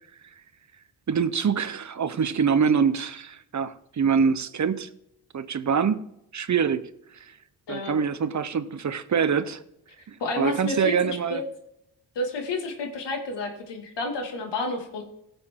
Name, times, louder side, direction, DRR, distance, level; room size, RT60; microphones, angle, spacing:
voice 1, 1.1-4.9 5.3-6.0 6.3-7.3 7.7-9.6 10.1-11.4, right 6 dB, 45° right, 0.8 m, -25 dB
voice 2, 10.2-11.4 12.2-15.0, left 2 dB, 85° left, 2.2 m, -30 dB
16.5 x 7.1 x 3.7 m
cardioid pair, 75°, 41 cm